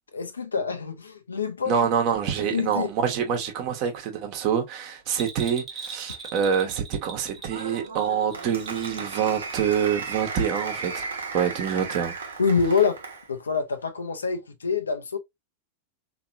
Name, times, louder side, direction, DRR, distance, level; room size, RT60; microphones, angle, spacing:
voice 1, 0.1-1.8 2.5-2.9 12.4-13.0 13.3-15.2, left 5 dB, 75° left, 0.6 m, -26 dB
voice 2, 1.7-11.1 11.3-12.2, right 7 dB, 45° right, 1.0 m, -26 dB
Bell, 5.1-9.2 9.5-9.6, right 5 dB, 20° right, 1.3 m, -40 dB
Applause, 7.5-13.3, right 4 dB, 70° right, 1.0 m, -35 dB
3.8 x 2.9 x 2.6 m
figure-of-eight pair, 90°, 0 cm